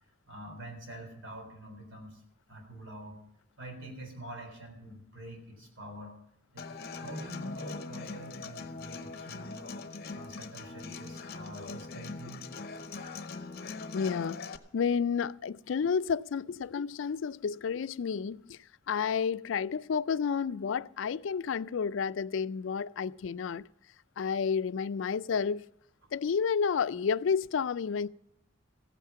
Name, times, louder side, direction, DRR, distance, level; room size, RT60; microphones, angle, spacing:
voice 1, 0.0-2.2 2.5-3.2 3.6-6.1 6.5-9.7 10.1-12.4, right 1 dB, 65° right, 3.9 m, -46 dB
Human voice / Acoustic guitar, 6.6-14.6, left 4 dB, 50° left, 0.8 m, -41 dB
voice 2, 13.9-14.4 14.7-18.6 18.9-23.7 24.2-25.7 26.1-28.1, left 6 dB, 70° left, 0.4 m, -30 dB
15.5 x 9.2 x 5.8 m
head